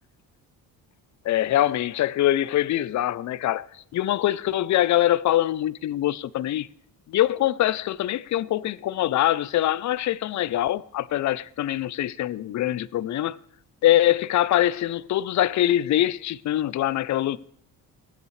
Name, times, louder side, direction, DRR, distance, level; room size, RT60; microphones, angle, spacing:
voice 1, 1.2-3.7 3.9-6.7 7.1-13.4 13.8-17.4, left 13 dB, 50° left, 0.5 m, -23 dB
19.5 x 8.3 x 3.2 m
cardioid pair, 105°, 38 cm